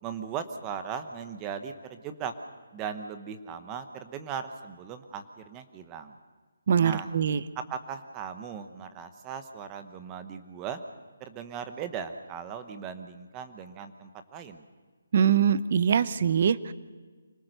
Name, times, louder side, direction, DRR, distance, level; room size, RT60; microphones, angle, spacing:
voice 1, 0.0-2.3 2.7-6.1 6.8-7.1 7.6-10.8 11.2-14.6, right 7 dB, 15° right, 8 dB, 1.0 m, -38 dB
voice 2, 6.7-7.4 15.1-16.7, right 7 dB, 40° right, 16 dB, 0.8 m, -23 dB
25.5 x 19.0 x 6.6 m, 1.4 s
hypercardioid pair, 170°, 0 cm